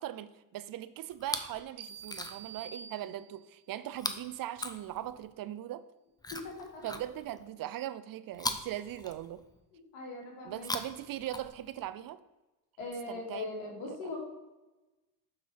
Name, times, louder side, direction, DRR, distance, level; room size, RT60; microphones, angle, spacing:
voice 1, 0.0-5.9 6.8-9.4 10.4-12.2 13.1-14.2, right 13 dB, 55° right, 0.6 m, -40 dB
Chewing mastication, 1.1-1.6 2.0-2.6 3.9-5.3 6.2-7.5 8.3-9.6 10.5-11.9 12.8-12.9, left 2 dB, 10° left, 0.7 m, -40 dB
sound 1, 1.8-3.6, right 7 dB, 70° right, 1.3 m, -48 dB
voice 2, 6.3-6.8 9.7-10.7 12.8-14.2, left 3 dB, 90° left, 3.0 m, -40 dB
7.3 x 5.6 x 4.7 m
supercardioid pair, 95°, 41 cm